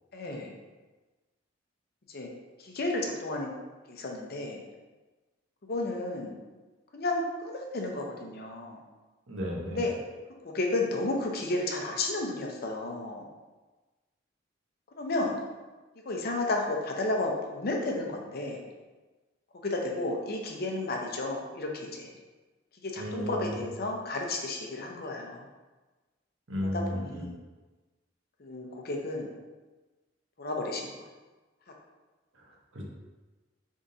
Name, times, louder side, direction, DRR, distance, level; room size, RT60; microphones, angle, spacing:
voice 1, 0.1-0.5 2.1-2.3 2.6-3.5 3.9-4.6 5.6-6.3 6.9-8.8 9.7-9.9 10.4-13.3 15.0-15.4 16.0-18.6 19.6-22.1 22.8-25.4 26.6-27.3 28.4-29.3 30.4-30.8, left 2 dB, 55° left, 1 dB, 0.7 m, -32 dB
voice 2, 9.3-9.8 23.0-23.6 26.5-27.3 32.3-32.9, equal, 80° right, -2 dB, 1.0 m, -34 dB
5.1 x 3.6 x 2.7 m, 1.2 s
head